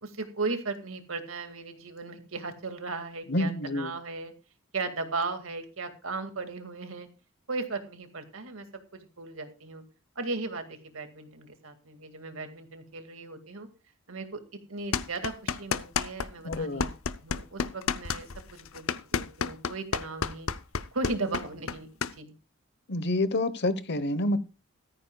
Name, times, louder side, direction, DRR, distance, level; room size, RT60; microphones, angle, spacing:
voice 1, 0.0-4.3 4.7-7.1 7.5-8.7 8.9-9.8 10.2-13.7 14.1-14.4 14.7-16.9 17.2-20.5 20.9-21.9 22.2-22.4, right 3 dB, 75° right, 2.1 m, -36 dB
voice 2, 3.3-3.9 16.4-16.9 22.9-24.4, left 1 dB, 55° left, 1.0 m, -28 dB
sound 1, 14.9-16.3 16.5-22.1, left 6 dB, 80° left, 0.7 m, -30 dB
14.5 x 14.0 x 2.3 m
head